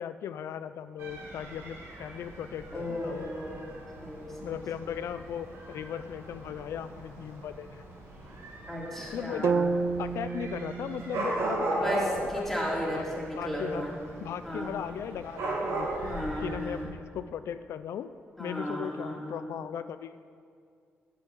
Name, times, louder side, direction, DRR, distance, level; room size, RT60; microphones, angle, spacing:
voice 1, 0.0-3.3 4.4-7.8 9.1-9.5 10.0-12.5 12.9-13.0 13.4-13.8 14.2-15.9 16.4-18.1 18.4-20.2, left 9 dB, 85° left, 11 dB, 0.4 m, -37 dB
Dog / Cat, 1.0-16.9, right 2 dB, 85° right, 2.1 m, -38 dB
voice 2, 2.7-3.6 4.0-4.6 8.7-9.8 11.7-14.0 14.4-14.8 16.0-16.9 18.4-19.6, equal, 5° left, -4 dB, 2.8 m, -35 dB
sound 1, 9.4-13.5, right 5 dB, 60° right, 0.5 m, -33 dB
8.2 x 8.2 x 8.3 m, 2.3 s
cardioid pair, 120°, 5 cm